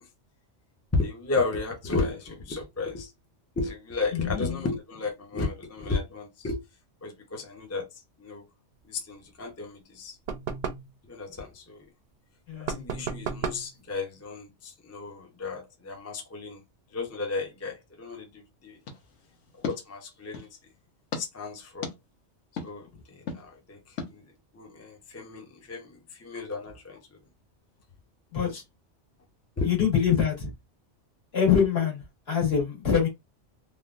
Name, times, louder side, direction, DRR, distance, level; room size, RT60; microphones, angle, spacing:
voice 1, 0.9-3.1 3.6-6.6 7.0-7.9 8.2-8.4 8.9-10.2 11.0-11.9 12.7-16.6 16.9-18.8 19.6-20.5 21.2-21.9 22.6-24.2 24.5-27.2 28.4-28.5 29.6-29.7, left 3 dB, 20° left, 0.4 m, -33 dB
voice 2, 4.1-4.6 12.5-12.8 28.3-28.6 29.6-30.5 31.3-33.1, left 7 dB, 55° left, 1.8 m, -25 dB
sound 1, 10.3-10.9 12.7-13.7, right 6 dB, 55° right, 0.6 m, -33 dB
sound 2, 18.8-20.6 21.1-21.2 21.8-21.9 22.6-22.7 23.3-23.4 24.0-24.1, left 5 dB, 80° left, 1.2 m, -37 dB
3.4 x 2.3 x 2.4 m
omnidirectional pair, 1.2 m